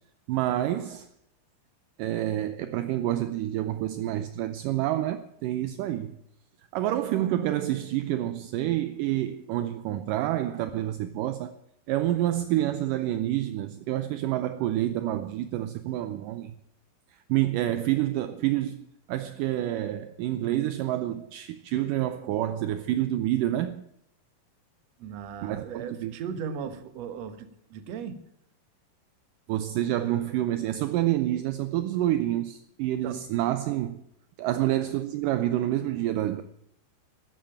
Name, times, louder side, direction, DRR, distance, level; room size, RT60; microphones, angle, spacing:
voice 1, 0.3-1.1 2.0-6.2 6.7-11.6 11.9-16.5 17.3-23.8 25.4-26.2 29.5-34.0 34.4-36.4, right 13 dB, 80° right, 2.0 m, -28 dB
voice 2, 25.0-28.2 33.0-33.2 34.6-34.7, right 7 dB, 60° right, 2.0 m, -37 dB
13.0 x 10.5 x 8.9 m
omnidirectional pair, 4.5 m